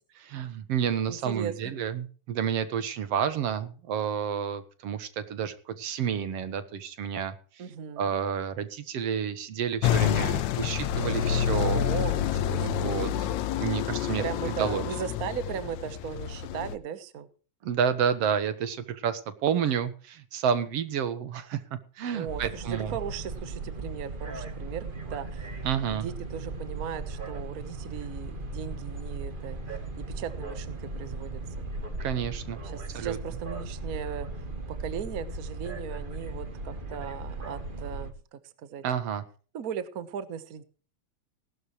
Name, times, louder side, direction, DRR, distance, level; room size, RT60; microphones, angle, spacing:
voice 1, 0.3-7.3 8.0-11.8 12.6-13.3 13.6-14.9 17.6-21.6 22.0-23.0 25.6-26.1 32.0-32.6 32.9-33.2 38.8-39.2, right 8 dB, 60° right, 12 dB, 2.1 m, -30 dB
voice 2, 1.1-1.7 7.6-8.1 11.6-12.9 14.2-17.3 22.1-24.8 25.1-25.5 25.9-29.6 30.0-31.3 32.6-34.3 34.7-38.8 39.5-40.6, right 8 dB, 85° right, 12 dB, 0.7 m, -37 dB
sound 1, 9.8-16.7, left 10 dB, 75° left, 2.1 m, -28 dB
sound 2, 22.3-38.1, right 3 dB, 25° right, 1.3 m, -37 dB
18.0 x 12.0 x 3.1 m, 0.39 s
omnidirectional pair, 3.5 m